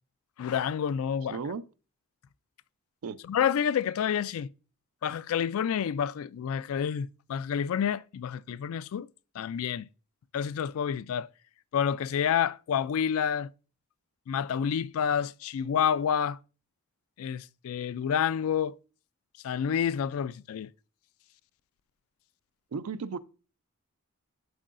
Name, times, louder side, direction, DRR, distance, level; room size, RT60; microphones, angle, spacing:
voice 1, 0.4-1.4 3.3-4.5 5.0-9.1 9.4-9.9 10.3-11.3 11.7-13.5 14.3-16.4 17.2-18.7 19.4-20.7, left 8 dB, 65° left, 0.3 m, -29 dB
voice 2, 1.3-1.6 3.0-3.2 22.7-23.2, right 5 dB, 75° right, 0.4 m, -34 dB
11.5 x 4.5 x 2.5 m
head